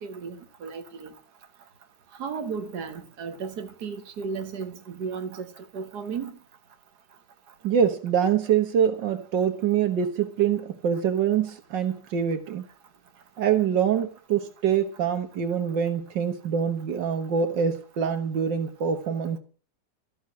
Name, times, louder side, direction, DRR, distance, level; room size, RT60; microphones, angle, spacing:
voice 1, 0.0-1.1 2.2-6.3, right 5 dB, 65° right, 2.0 m, -34 dB
voice 2, 7.6-12.6 13.4-19.4, right 8 dB, 85° right, 2.0 m, -25 dB
14.0 x 6.3 x 9.5 m
omnidirectional pair, 1.9 m